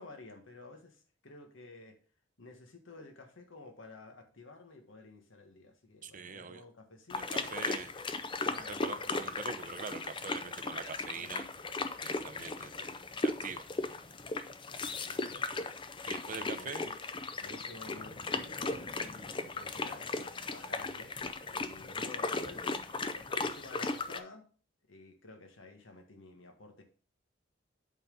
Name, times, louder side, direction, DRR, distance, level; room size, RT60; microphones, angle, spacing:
voice 1, 0.0-2.0 2.4-7.6 8.4-9.1 11.1-11.3 12.3-13.0 14.6-17.0 17.4-24.4 24.9-26.8, left 3 dB, 80° left, 1.6 m, -52 dB
voice 2, 6.0-6.6 7.2-7.9 8.4-11.5 12.0-12.9 13.2-13.7 16.0-16.8, right 5 dB, 45° right, 0.7 m, -43 dB
sound 1, 7.1-24.2, left 3 dB, 25° left, 0.5 m, -37 dB
8.1 x 4.1 x 5.3 m
head